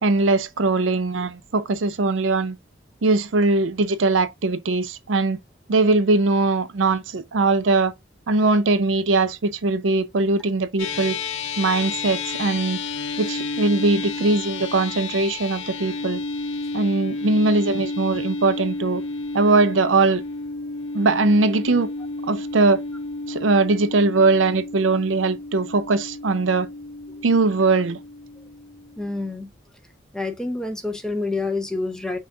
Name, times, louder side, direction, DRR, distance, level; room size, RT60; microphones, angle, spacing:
voice 1, 0.0-2.6 3.0-5.4 5.7-7.9 8.3-11.2 11.6-12.8 13.2-16.2 16.7-19.0 19.3-20.2 20.9-21.9 22.2-22.8 23.3-26.7 27.2-28.0, right 3 dB, 85° right, 0.6 m, -20 dB
sound 1, 10.8-29.3, left 3 dB, 85° left, 0.7 m, -31 dB
voice 2, 29.0-29.5 30.1-32.2, left 3 dB, 5° left, 0.6 m, -28 dB
5.6 x 2.4 x 3.7 m
head